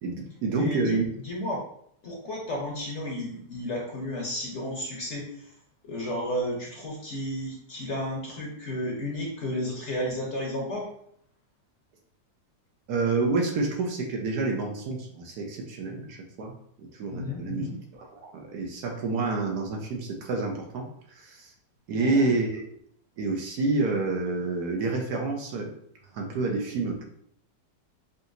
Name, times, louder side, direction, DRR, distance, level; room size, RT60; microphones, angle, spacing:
voice 1, 0.0-1.1 12.9-16.5 16.8-17.7 17.9-21.5 21.9-22.7 23.2-25.7 26.1-27.0, right 3 dB, 70° right, 2 dB, 1.2 m, -28 dB
voice 2, 0.6-1.0 1.2-1.6 2.0-5.3 5.8-10.9 17.1-17.7 22.0-22.3, left 1 dB, 50° left, -1 dB, 1.0 m, -32 dB
5.3 x 2.7 x 2.6 m, 0.66 s
omnidirectional pair, 1.8 m